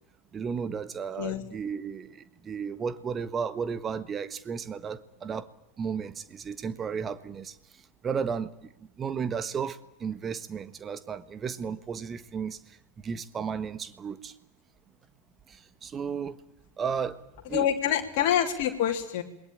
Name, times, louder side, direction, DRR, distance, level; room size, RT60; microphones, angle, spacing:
voice 1, 0.3-5.5 5.8-7.5 8.0-14.3 15.5-16.4 16.8-17.2 17.5-18.0, right 6 dB, 20° right, 13 dB, 1.5 m, -34 dB
voice 2, 17.5-19.2, left 10 dB, 50° left, 3 dB, 3.1 m, -26 dB
28.0 x 21.5 x 8.9 m, 0.83 s
figure-of-eight pair, 90°, 0 cm